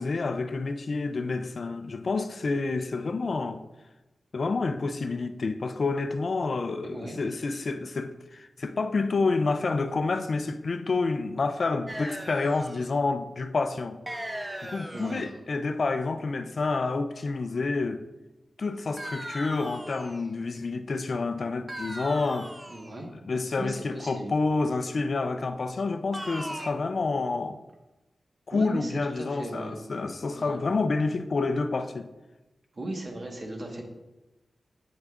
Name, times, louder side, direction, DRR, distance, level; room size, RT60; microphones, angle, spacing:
voice 1, 0.0-3.6 4.3-14.0 14.6-18.0 18.6-22.5 23.3-27.6 28.5-32.1, left 3 dB, 55° left, 0.4 m, -28 dB
voice 2, 6.8-7.2 14.9-15.2 22.7-23.1 23.6-24.3 28.5-29.8 30.4-30.6 32.7-33.8, right 1 dB, 45° right, 1.3 m, -37 dB
sound 1, 11.9-12.9 14.1-15.4 19.0-20.3 21.7-23.0 26.1-26.7, right 1 dB, 10° right, 0.6 m, -38 dB
8.7 x 6.3 x 2.5 m
wide cardioid pair, 105°, 0 cm